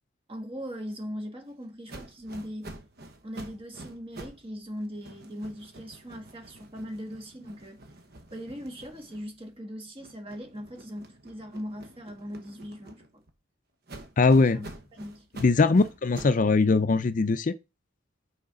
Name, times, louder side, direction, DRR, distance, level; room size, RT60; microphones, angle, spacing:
voice 1, 0.3-2.7 3.2-7.8 8.3-13.2 14.5-15.3, equal, 30° right, 1.6 m, -40 dB
sound 1, 1.9-4.5 4.8-9.6 10.0-13.3 13.9-16.5, right 1 dB, 50° right, 1.1 m, -47 dB
voice 2, 14.2-14.6 15.4-17.5, left 3 dB, 40° left, 0.4 m, -21 dB
6.1 x 5.0 x 5.1 m
head